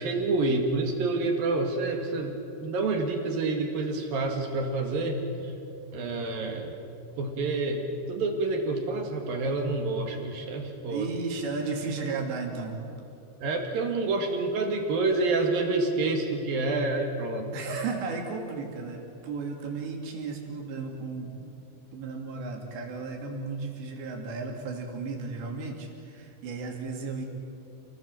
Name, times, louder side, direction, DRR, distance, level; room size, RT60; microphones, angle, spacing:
voice 1, 0.0-5.5 5.9-6.8 7.2-11.0 13.4-17.5, right 3 dB, 60° right, 3 dB, 3.4 m, -28 dB
voice 2, 10.9-12.8 17.5-21.5 21.9-27.3, right 4 dB, 80° right, 1 dB, 4.9 m, -34 dB
28.5 x 19.0 x 7.6 m, 2.7 s
omnidirectional pair, 5.0 m